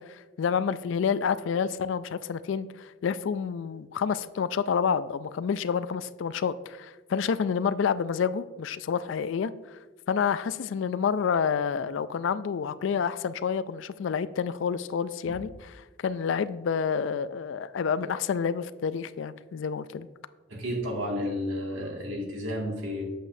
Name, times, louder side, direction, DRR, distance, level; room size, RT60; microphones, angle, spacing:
voice 1, 0.0-9.8 10.1-15.7 16.0-20.1, left 6 dB, 65° left, 15 dB, 0.3 m, -29 dB
voice 2, 20.5-23.1, left 1 dB, 70° right, -2 dB, 2.1 m, -32 dB
8.3 x 7.6 x 2.7 m, 1.3 s
head